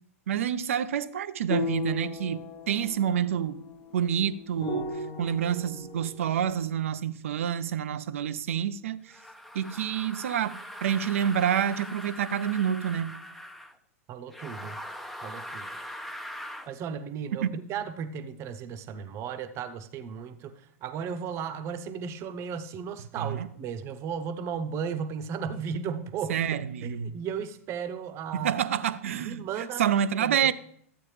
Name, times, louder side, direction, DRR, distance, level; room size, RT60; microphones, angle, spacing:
voice 1, 0.3-3.6 3.9-4.9 5.2-9.0 9.5-13.2 17.4-17.6 23.2-23.5 26.3-27.1 28.3-30.5, right 9 dB, 65° right, 0.5 m, -28 dB
sound 1, 1.5-6.5, left 4 dB, 35° left, 1.0 m, -36 dB
sound 2, 9.1-13.8 14.3-16.7, equal, ahead, 0.6 m, -41 dB
voice 2, 14.1-14.8 15.2-15.7 16.7-26.4 26.8-28.6 29.2-29.8 30.2-30.5, right 7 dB, 35° right, 0.8 m, -35 dB
12.0 x 8.3 x 3.2 m
figure-of-eight pair, 100°, 8 cm